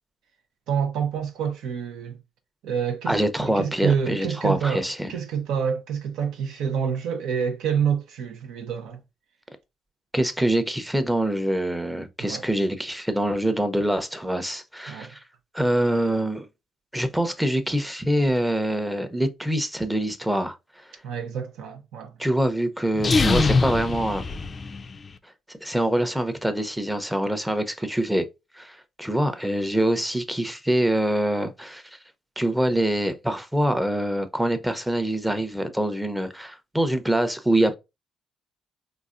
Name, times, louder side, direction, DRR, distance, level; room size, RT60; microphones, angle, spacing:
voice 1, 0.7-2.2 2.6-4.8 5.1-9.0 12.2-12.4 14.9-15.1 21.0-22.1, right 7 dB, 85° right, 0.7 m, -27 dB
voice 2, 3.1-5.1 10.1-15.2 15.5-16.5 16.9-20.5 22.2-24.2 25.6-28.2 28.6-31.8 32.4-37.8, right 1 dB, 5° right, 0.6 m, -25 dB
sound 1, 22.9-25.1, left 4 dB, 35° left, 0.3 m, -23 dB
3.9 x 2.4 x 2.4 m
cardioid pair, 90°, 0 cm